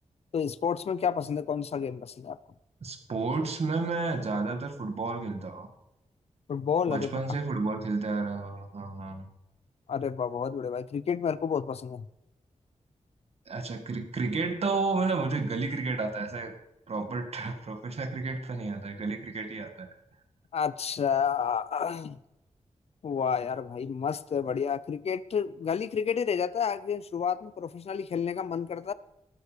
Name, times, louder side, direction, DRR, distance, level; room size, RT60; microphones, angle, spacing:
voice 1, 0.3-2.4 6.5-7.2 9.9-12.1 20.5-22.2 23.0-28.9, left 7 dB, 55° left, 16 dB, 0.5 m, -30 dB
voice 2, 2.8-5.7 6.9-9.3 13.5-16.5 16.9-19.9, right 3 dB, 55° right, 6 dB, 2.0 m, -31 dB
13.0 x 13.0 x 5.2 m, 0.85 s
wide cardioid pair, 170°, 12 cm